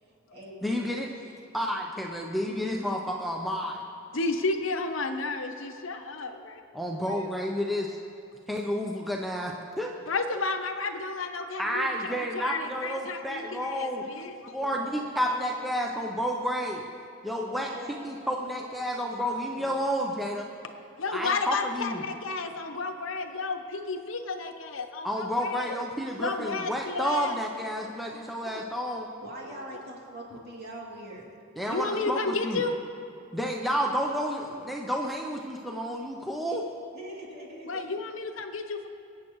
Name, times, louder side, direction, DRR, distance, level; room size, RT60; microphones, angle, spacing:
voice 1, 0.0-1.3 14.0-14.2 14.5-16.0 17.5-19.8 29.2-31.2 36.5-36.6 36.9-37.9, right 1 dB, 50° right, -4 dB, 2.7 m, -44 dB
voice 2, 0.6-1.1 1.5-3.8 6.7-8.0 8.5-9.9 11.6-14.0 14.5-16.8 17.2-17.7 18.0-20.5 21.1-22.0 25.0-29.1 31.6-32.6 33.3-36.6, equal, ahead, -1 dB, 0.6 m, -30 dB
voice 3, 4.1-6.6 7.0-7.2 10.1-14.3 21.0-25.8 26.2-27.4 28.1-28.2 28.5-28.6 31.7-32.7 37.7-38.9, left 3 dB, 70° left, 6 dB, 0.9 m, -32 dB
24.0 x 8.5 x 3.1 m, 2.9 s
head